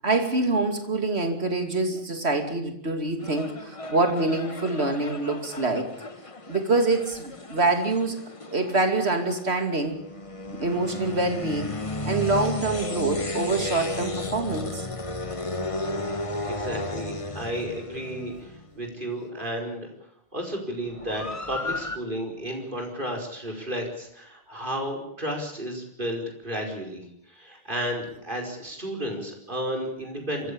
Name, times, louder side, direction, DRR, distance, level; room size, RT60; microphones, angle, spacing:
voice 1, 0.0-5.9 6.5-8.2 8.5-10.0 10.5-11.7 12.0-14.9, right 2 dB, 80° right, 6 dB, 3.0 m, -25 dB
sound 1, 3.2-18.8 20.9-22.0, left 2 dB, 30° left, 1.4 m, -34 dB
voice 2, 16.5-19.9 20.3-27.0 27.3-30.5, equal, 50° right, 2 dB, 5.2 m, -32 dB
25.5 x 15.0 x 8.7 m, 0.71 s
omnidirectional pair, 1.1 m